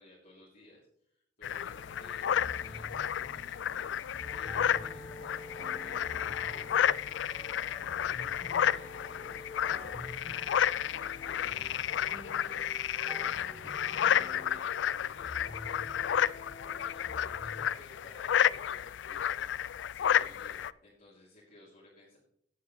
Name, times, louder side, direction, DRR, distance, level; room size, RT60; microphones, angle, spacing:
voice 1, 0.0-3.9 4.3-12.6 13.0-19.5 19.9-22.2, left 1 dB, 50° left, -7 dB, 3.0 m, -58 dB
sound 1, 1.4-20.7, left 9 dB, 75° left, 0.3 m, -31 dB
sound 2, 1.7-17.7, left 1 dB, 35° left, 1.2 m, -48 dB
sound 3, 4.5-14.6, right 1 dB, 25° right, 2.4 m, -55 dB
16.5 x 7.3 x 3.2 m, 0.70 s
head